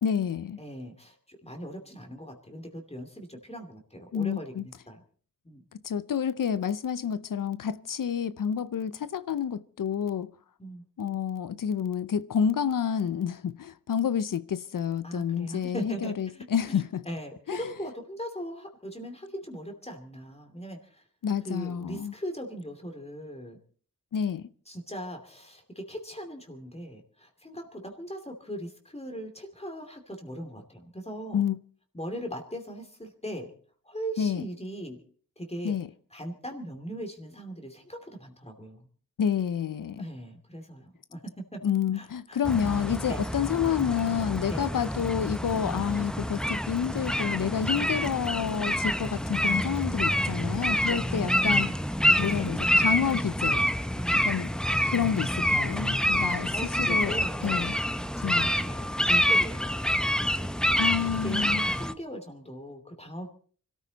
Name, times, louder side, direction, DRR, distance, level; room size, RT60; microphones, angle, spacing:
voice 1, 0.0-0.6 4.1-4.6 5.8-10.3 11.0-17.0 17.5-17.6 21.2-22.1 24.1-24.5 31.3-31.6 34.2-34.4 35.6-35.9 39.2-40.1 41.6-51.7 52.2-53.6 54.1-54.5 54.9-56.5 56.8-57.1 57.4-57.8 58.2-58.5 60.8-61.6, left 8 dB, 75° left, 0.7 m, -29 dB
voice 2, 0.6-5.0 5.4-5.6 10.6-10.8 15.0-21.0 21.4-23.6 24.7-31.5 31.9-33.5 33.8-35.0 35.4-35.8 36.1-38.9 40.0-41.6 41.9-42.4 43.1-43.2 44.5-44.7 45.6-45.9 48.6-49.0 50.7-51.8 52.1-52.9 53.9-54.2 55.9-57.8 58.2-63.3, equal, 20° left, 2.7 m, -40 dB
sound 1, 42.4-61.9, equal, ahead, 0.8 m, -27 dB
25.0 x 13.5 x 4.0 m
wide cardioid pair, 75°, 33 cm